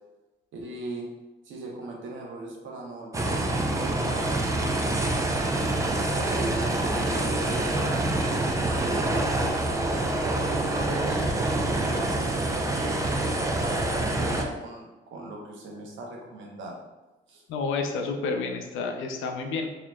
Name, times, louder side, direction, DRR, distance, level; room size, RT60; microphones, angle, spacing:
voice 1, 0.5-1.1 1.4-10.1 10.6-16.8 17.3-17.4, right 2 dB, 75° right, 0 dB, 0.8 m, -39 dB
sound 1, 3.1-14.4, right 2 dB, 15° right, 0.4 m, -26 dB
voice 2, 17.5-19.7, left 4 dB, 85° left, 4 dB, 0.5 m, -30 dB
4.1 x 2.9 x 2.3 m, 1.1 s
cardioid pair, 90°, 20 cm